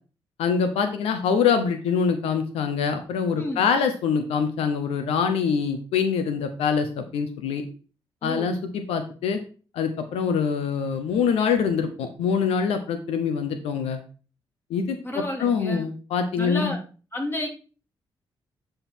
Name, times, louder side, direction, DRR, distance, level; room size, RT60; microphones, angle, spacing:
voice 1, 0.4-7.6 8.2-9.4 9.7-14.0 14.7-16.7, left 6 dB, 85° left, 7 dB, 0.8 m, -24 dB
voice 2, 8.2-8.6 15.0-15.9 16.4-16.8 17.1-17.5, left 1 dB, 25° left, 0 dB, 2.9 m, -31 dB
9.9 x 3.9 x 4.3 m, 0.37 s
supercardioid pair, 60°, 10 cm